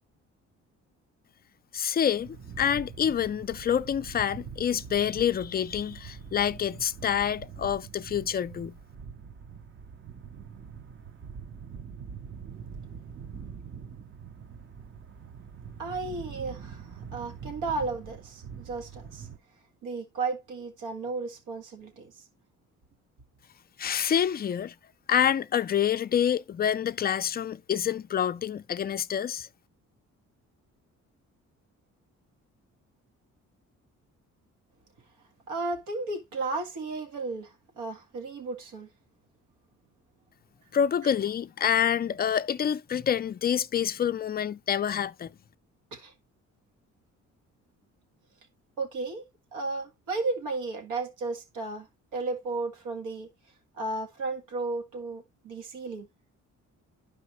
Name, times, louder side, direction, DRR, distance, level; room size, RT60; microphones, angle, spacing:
voice 1, 1.7-8.8 23.8-24.7 25.1-29.5 40.7-45.3, left 9 dB, 30° left, 0.4 m, -27 dB
sound 1, 2.1-19.4, right 6 dB, 40° right, 0.8 m, -44 dB
voice 2, 15.8-19.3 19.8-22.1 35.5-38.9 45.9-46.1 48.8-49.2 49.5-51.9 52.1-53.3 53.8-56.1, right 3 dB, 90° right, 1.9 m, -34 dB
11.0 x 4.9 x 3.0 m
cardioid pair, 90°, 30 cm